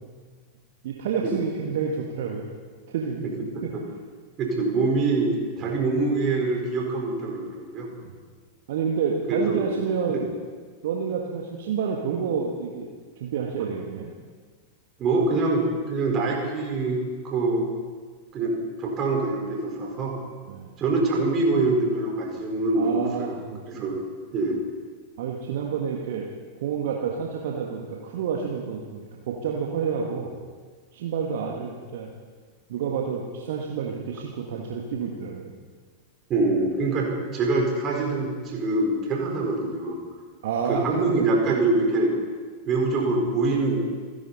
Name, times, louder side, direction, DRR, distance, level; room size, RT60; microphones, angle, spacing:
voice 1, 0.8-2.5 2.9-3.2 3.6-3.7 5.6-5.8 8.0-8.1 8.7-10.3 10.8-12.9 13.2-14.1 20.5-20.7 22.7-23.9 25.2-26.3 26.6-30.3 30.9-32.1 32.7-35.5 40.4-41.2, right 6 dB, 55° right, 0 dB, 1.6 m, -29 dB
voice 2, 4.4-7.9 9.3-9.6 10.1-10.2 15.0-17.7 18.3-20.2 20.8-23.4 23.7-23.9 24.3-24.6 36.3-40.0 40.7-42.1 42.7-43.8, right 3 dB, 30° right, 0 dB, 4.5 m, -24 dB
27.5 x 11.0 x 4.2 m, 1.5 s
figure-of-eight pair, 90°, 0 cm